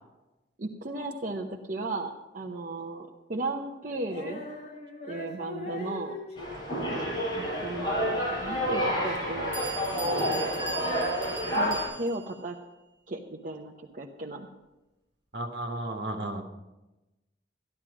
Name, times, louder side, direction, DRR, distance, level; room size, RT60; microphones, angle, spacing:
voice 1, 0.6-4.4 5.1-6.1 7.3-9.6 11.5-12.6 13.1-14.5, right 2 dB, 50° right, -1 dB, 0.9 m, -35 dB
Female singing, 4.0-10.5, left 1 dB, 40° left, 4.2 m, -43 dB
sound 1, 6.4-11.8, equal, 25° left, 5.1 m, -29 dB
Bell, 9.1-9.2 9.5-12.3, right 3 dB, 35° right, 5.9 m, -39 dB
voice 2, 15.3-16.4, right 1 dB, 65° right, 3 dB, 1.7 m, -33 dB
13.0 x 12.0 x 5.0 m, 1.0 s
head